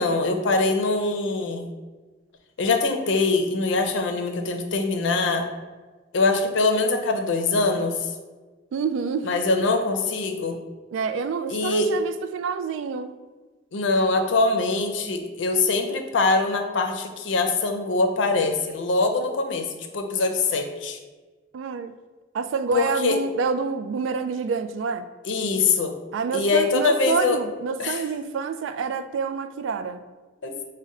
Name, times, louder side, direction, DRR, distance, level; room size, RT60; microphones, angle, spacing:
voice 1, 0.0-1.7 2.6-5.5 6.1-7.9 9.2-10.6 11.5-11.9 13.7-19.7 19.9-21.0 22.7-23.2 25.2-26.0 26.3-27.4 27.8-28.0 30.4-30.5, left 3 dB, 80° left, 5 dB, 0.5 m, -23 dB
voice 2, 8.7-9.3 10.9-13.2 21.5-21.9 22.3-25.1 26.1-30.0, right 5 dB, 90° right, 10 dB, 0.3 m, -27 dB
5.2 x 2.2 x 3.7 m, 1.3 s
head